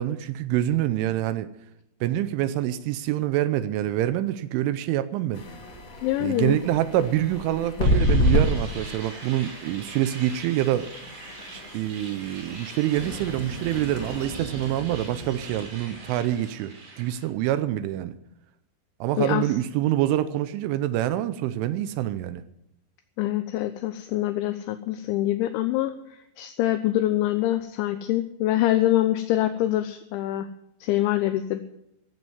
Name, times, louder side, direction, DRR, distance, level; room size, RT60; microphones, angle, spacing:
voice 1, 0.0-1.5 2.0-5.4 6.2-10.9 11.5-18.2 19.0-22.4, right 13 dB, 80° right, 3.0 m, -26 dB
sound 1, 5.3-16.0, equal, 45° left, 1.6 m, -30 dB
voice 2, 6.0-6.6 19.2-19.4 23.2-30.5 30.8-31.6, left 14 dB, 80° left, 2.8 m, -25 dB
sound 2, 7.8-17.3, right 3 dB, 45° right, 4.3 m, -43 dB
15.5 x 7.9 x 9.2 m
omnidirectional pair, 5.8 m